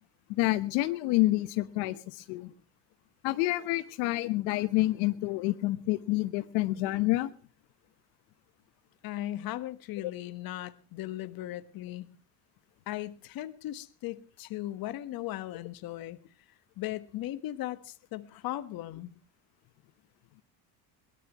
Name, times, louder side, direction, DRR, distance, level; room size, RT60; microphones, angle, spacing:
voice 1, 0.3-2.5 3.2-7.3 10.0-10.1, left 18 dB, 80° left, 1.2 m, -28 dB
voice 2, 9.0-12.1 12.9-16.2 16.8-19.1, left 14 dB, 50° left, 1.4 m, -37 dB
22.5 x 18.0 x 3.0 m
cardioid pair, 140°, 44 cm